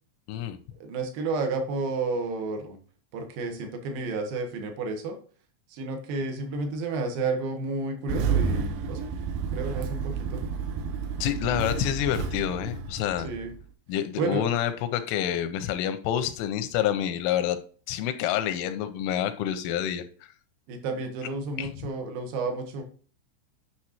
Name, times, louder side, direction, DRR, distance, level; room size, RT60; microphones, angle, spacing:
voice 1, 0.7-2.8 3.1-5.2 5.7-9.1 9.5-10.4 13.2-13.5 14.2-14.5 20.7-22.8, right 3 dB, 65° right, 5 dB, 2.4 m, -31 dB
Engine starting, 8.1-13.6, right 5 dB, 85° right, 2.3 m, -30 dB
voice 2, 11.2-13.3 13.9-17.6 17.9-20.0 21.6-21.7, left 11 dB, 85° left, 10 dB, 3.0 m, -28 dB
9.9 x 6.2 x 3.0 m, 0.42 s
omnidirectional pair, 5.7 m